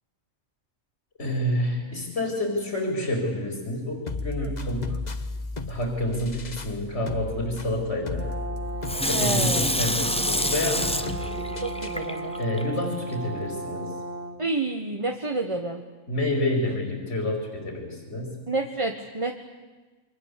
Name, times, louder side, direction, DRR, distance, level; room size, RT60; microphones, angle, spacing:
voice 1, 1.2-5.0 5.7-8.3 9.0-10.9 12.4-13.9 16.1-18.4, left 1 dB, 55° left, 3 dB, 5.0 m, -28 dB
sound 1, 4.1-12.1, left 2 dB, 35° left, 1.4 m, -35 dB
Brass instrument, 8.1-14.4, right 2 dB, 65° right, 2.5 m, -35 dB
Water tap faucet / Sink (filling or washing), 8.8-12.6 13.1-13.2, left 1 dB, 5° left, 1.2 m, -27 dB
voice 2, 9.1-9.7 11.6-12.4 14.4-15.8 18.5-19.3, right 2 dB, 25° right, 4 dB, 1.4 m, -29 dB
28.5 x 24.5 x 8.4 m, 1.3 s
omnidirectional pair, 1.4 m